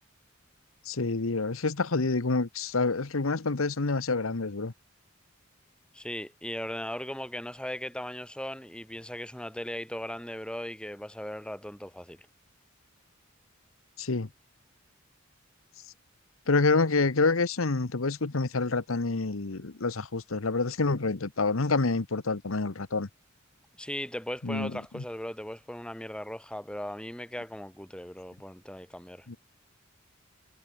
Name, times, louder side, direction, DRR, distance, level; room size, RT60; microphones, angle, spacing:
voice 1, 0.9-4.7 14.0-14.3 16.5-23.1 24.4-25.0 29.3-29.4, left 3 dB, 85° left, 1.1 m, -27 dB
voice 2, 5.9-12.2 23.8-29.3, left 1 dB, 5° left, 3.4 m, -38 dB
head